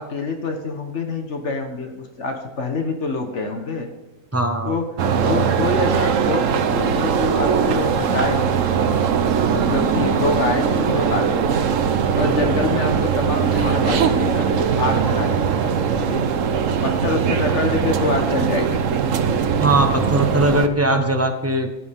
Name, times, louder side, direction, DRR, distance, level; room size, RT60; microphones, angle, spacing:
voice 1, 0.0-3.9 4.7-4.9 5.2-8.7 9.5-11.7 12.1-16.2 16.8-18.8 20.9-21.0, left 3 dB, 60° left, 4 dB, 1.6 m, -26 dB
voice 2, 4.3-4.8 19.6-21.7, right 1 dB, 10° right, 4 dB, 1.0 m, -19 dB
sound 1, 5.0-20.7, right 6 dB, 70° right, 1.2 m, -20 dB
15.0 x 9.5 x 3.6 m, 1.1 s
omnidirectional pair, 1.4 m